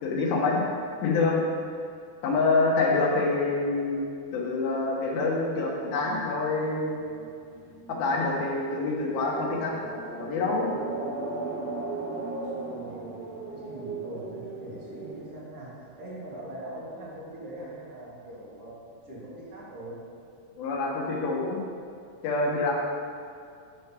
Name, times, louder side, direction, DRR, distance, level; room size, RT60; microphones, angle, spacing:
voice 1, 0.0-0.6 1.0-1.4 2.2-7.0 7.9-9.8 10.2-10.7 20.6-21.6 22.2-22.7, left 3 dB, 70° left, -3 dB, 2.6 m, -26 dB
sound 1, 5.9-15.2, right 3 dB, 75° right, 3.9 m, -38 dB
voice 2, 12.6-13.1 13.5-18.7 19.1-20.0, right 1 dB, 45° right, -8 dB, 2.0 m, -42 dB
10.5 x 6.1 x 3.4 m, 2.4 s
omnidirectional pair, 4.9 m